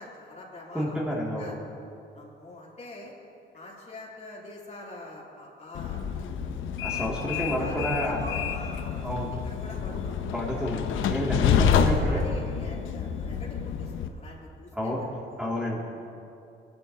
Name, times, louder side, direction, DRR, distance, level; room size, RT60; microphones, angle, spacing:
voice 1, 0.0-1.0 1.4-1.5 2.1-3.1 3.5-6.0 6.9-7.1 7.3-10.2 12.1-15.4, left 2 dB, 35° left, -4 dB, 3.1 m, -44 dB
voice 2, 0.7-1.6 6.8-8.2 9.0-9.3 10.3-12.2 14.7-15.0 15.4-15.9, equal, 5° right, -5 dB, 2.3 m, -30 dB
Train, 5.7-14.1, left 7 dB, 80° left, 0.8 m, -28 dB
19.5 x 11.5 x 2.8 m, 2.6 s
cardioid pair, 90°, 20 cm